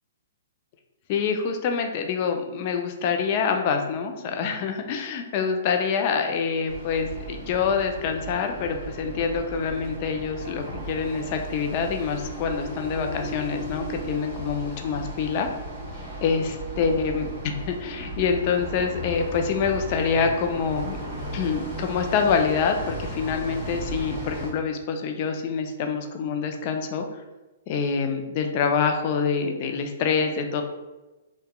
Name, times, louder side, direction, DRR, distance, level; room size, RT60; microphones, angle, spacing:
voice 1, 1.1-15.5 16.2-16.4 16.8-21.0 21.3-27.1 27.7-30.6, left 6 dB, 40° left, 5 dB, 0.3 m, -26 dB
sound 1, 6.7-24.5, right 1 dB, 10° right, 1.2 m, -36 dB
2.8 x 2.2 x 2.2 m, 1.1 s
hypercardioid pair, 145°, 0 cm